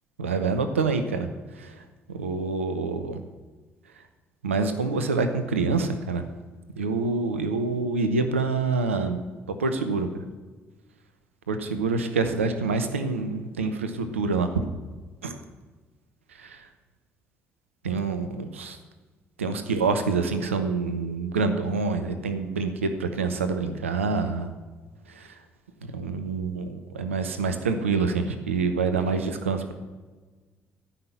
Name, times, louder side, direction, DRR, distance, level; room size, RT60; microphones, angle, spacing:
voice 1, 0.2-1.3 1.6-1.7 2.1-3.2 4.4-6.2 6.8-9.2 9.6-10.2 11.5-14.6 15.2-15.3 16.4-16.6 17.8-18.8 19.4-24.5 25.1-25.3 25.9-29.7, right 4 dB, 85° right, 8 dB, 0.9 m, -26 dB
13.5 x 5.8 x 8.1 m, 1.3 s
figure-of-eight pair, 45°, 7 cm